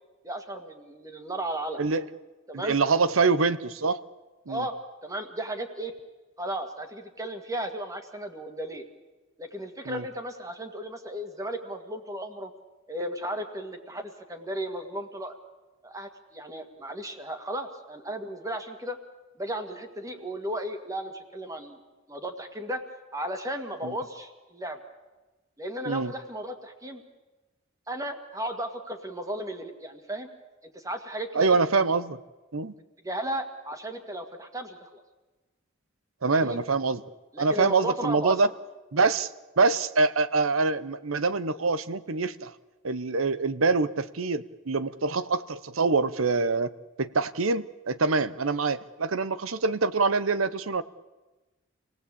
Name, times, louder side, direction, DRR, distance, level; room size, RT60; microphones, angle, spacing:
voice 1, 0.2-1.8 2.5-2.8 4.5-4.8 5.0-5.9 6.4-8.8 9.4-12.5 12.9-15.3 15.8-19.0 19.4-21.8 22.1-22.8 23.1-24.8 25.6-27.0 27.9-30.3 30.7-31.6 33.0-35.0 36.2-36.6 37.3-38.4, right 1 dB, 15° right, 6 dB, 2.0 m, -35 dB
voice 2, 2.5-4.0 4.5-4.6 9.9-10.0 23.8-23.9 25.9-26.1 31.3-32.2 32.5-32.7 36.2-37.0 37.4-38.5 38.9-39.3 39.6-42.5 42.8-46.7 47.0-50.8, right 4 dB, 90° right, 16 dB, 0.9 m, -25 dB
27.0 x 18.0 x 8.6 m, 1.2 s
head